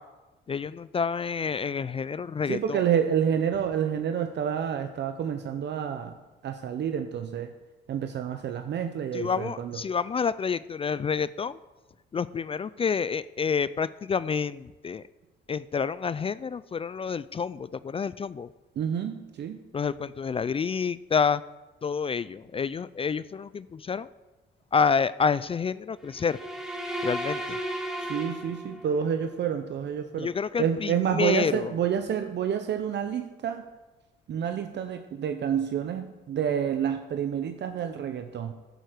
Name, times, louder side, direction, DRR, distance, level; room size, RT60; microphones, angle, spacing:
voice 1, 0.5-2.8 9.1-11.6 12.1-15.0 15.5-18.5 19.7-21.4 21.8-24.1 24.7-26.4 27.0-27.6 30.2-31.7, left 6 dB, 30° left, 18 dB, 0.3 m, -28 dB
voice 2, 2.5-6.2 6.4-7.5 7.9-9.8 18.8-19.6 28.0-30.3 30.6-33.7 34.3-38.5, right 8 dB, 60° right, 7 dB, 0.8 m, -29 dB
sound 1, 26.1-29.1, equal, ahead, 2.0 m, -34 dB
10.5 x 8.0 x 6.5 m, 1.2 s
cardioid pair, 90°, 20 cm